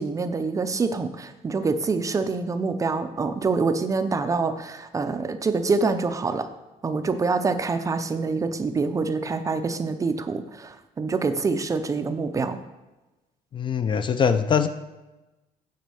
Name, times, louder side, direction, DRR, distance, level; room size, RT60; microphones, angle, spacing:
voice 1, 0.0-6.5 6.8-12.6, right 4 dB, 20° right, 9 dB, 0.5 m, -26 dB
voice 2, 13.5-14.7, left 7 dB, 35° left, 10 dB, 0.4 m, -22 dB
9.3 x 4.1 x 6.9 m, 1.1 s
cardioid pair, 160°, 15 cm